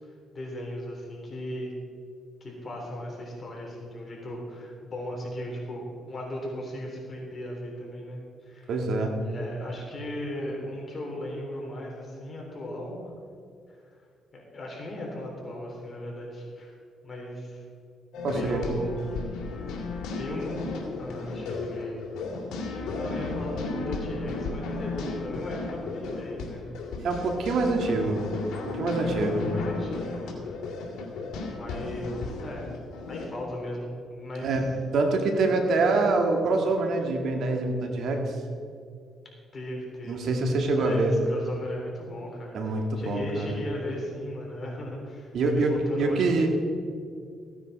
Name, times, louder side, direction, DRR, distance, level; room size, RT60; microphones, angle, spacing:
voice 1, 0.3-1.7 2.4-8.7 9.2-13.0 14.3-16.8 17.0-17.6 18.3-19.0 19.8-20.6 21.0-22.0 22.6-26.6 29.0-30.4 30.7-30.9 31.5-32.7 33.1-34.6 39.5-40.2 40.7-46.2, left 1 dB, 35° left, -2 dB, 3.5 m, -37 dB
voice 2, 8.7-9.1 18.2-18.6 27.0-28.2 28.6-29.4 34.4-34.6 34.9-38.4 40.1-41.1 42.5-43.5 45.3-45.7 46.0-46.5, right 3 dB, 70° right, 3 dB, 1.9 m, -25 dB
sound 1, 18.1-33.3, left 3 dB, 85° left, 2.1 m, -34 dB
15.5 x 9.6 x 4.2 m, 2.3 s
cardioid pair, 90°, 0 cm